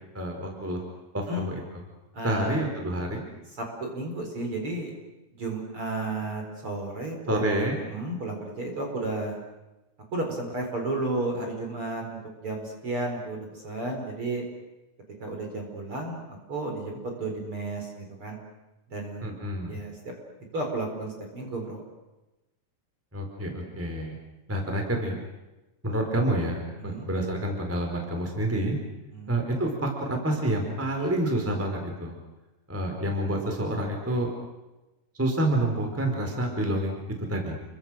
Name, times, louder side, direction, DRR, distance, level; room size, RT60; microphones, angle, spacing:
voice 1, 0.1-0.8 1.1-1.6 2.2-3.2 7.3-7.8 19.2-19.7 23.1-24.1 24.5-25.2 25.8-28.8 29.3-32.2 32.7-34.3 35.1-37.0 37.3-37.5, right 1 dB, 5° right, 3 dB, 4.2 m, -28 dB
voice 2, 2.1-2.7 3.6-4.9 5.3-9.4 10.1-14.4 15.2-16.2 16.5-18.4 18.9-19.3 19.7-20.1 20.5-21.8 26.8-27.1 29.1-29.3, right 2 dB, 35° right, 2 dB, 5.0 m, -33 dB
29.5 x 24.0 x 6.5 m, 1.0 s
omnidirectional pair, 4.6 m